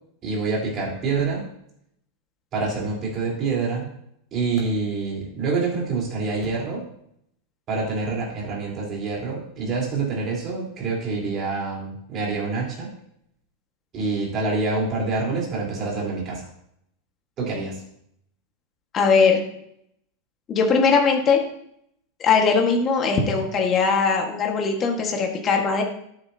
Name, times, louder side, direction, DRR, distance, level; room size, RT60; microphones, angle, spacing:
voice 1, 0.2-1.4 2.5-3.9 4.3-6.8 7.7-12.9 13.9-16.5 17.4-17.8, right 4 dB, 30° right, -3 dB, 3.9 m, -26 dB
voice 2, 18.9-19.4 20.5-21.4 22.2-25.8, left 5 dB, 25° left, 1 dB, 1.6 m, -20 dB
13.0 x 9.6 x 2.8 m, 0.72 s
supercardioid pair, 165°, 0 cm